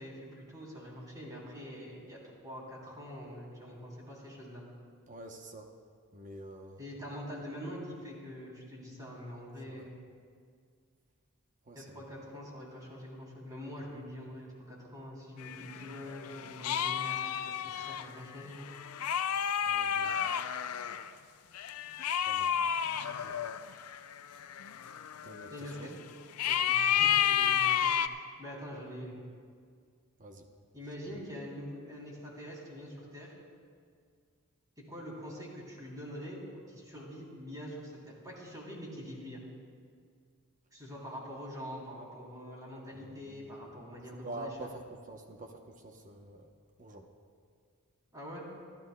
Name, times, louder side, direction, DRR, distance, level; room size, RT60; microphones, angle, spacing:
voice 1, 0.0-4.6 6.8-10.0 11.7-18.6 25.5-25.9 26.4-27.9 28.4-29.2 30.7-33.3 34.8-36.4 36.7-39.4 40.7-44.7 48.1-48.5, equal, 15° right, -4 dB, 3.1 m, -44 dB
voice 2, 5.1-5.7 6.1-6.9 9.6-9.9 11.7-12.0 13.9-14.0 19.6-20.2 22.2-22.6 23.1-23.4 25.2-26.0 28.0-28.1 30.2-30.5 42.9-43.7 44.1-46.5 46.8-47.1, right 1 dB, 35° right, 3 dB, 0.9 m, -47 dB
sound 1, 15.4-21.1 21.5-25.9 26.4-28.1, left 9 dB, 75° left, 0.5 m, -31 dB
27.5 x 12.0 x 2.2 m, 2.1 s
head